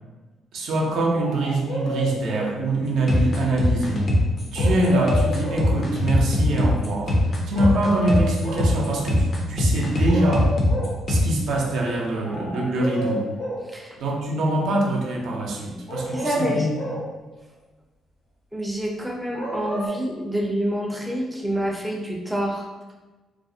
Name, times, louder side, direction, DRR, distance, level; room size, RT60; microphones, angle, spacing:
voice 1, 0.5-4.1 4.5-10.5 11.1-13.3 14.0-16.8, right 1 dB, 80° right, -1 dB, 0.5 m, -24 dB
sound 1, 1.1-2.6 4.5-5.7 7.5-8.7 9.8-9.9 10.1-11.0 12.2-13.7 15.9-17.1 19.3-19.9, equal, 75° left, 0.8 m, -30 dB
sound 2, 3.1-11.3, left 1 dB, 45° left, 0.5 m, -22 dB
voice 2, 13.7-14.0 16.1-16.7 18.5-22.7, equal, ahead, -1 dB, 0.4 m, -27 dB
2.4 x 2.0 x 2.6 m, 1.2 s
cardioid pair, 90°, 0 cm